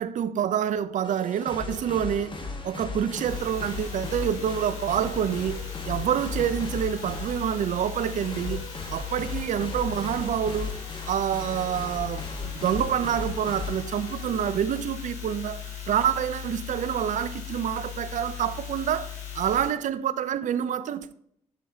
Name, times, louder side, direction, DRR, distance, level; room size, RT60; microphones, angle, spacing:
voice 1, 0.0-2.4 2.6-5.6 5.9-10.8 11.1-21.1, right 9 dB, 55° right, 0.5 m, -27 dB
sound 1, 1.0-14.8, left 3 dB, 30° left, 1.4 m, -37 dB
sound 2, 3.2-19.7, left 9 dB, 90° left, 2.1 m, -38 dB
7.5 x 6.2 x 2.7 m
hypercardioid pair, 50°, 15 cm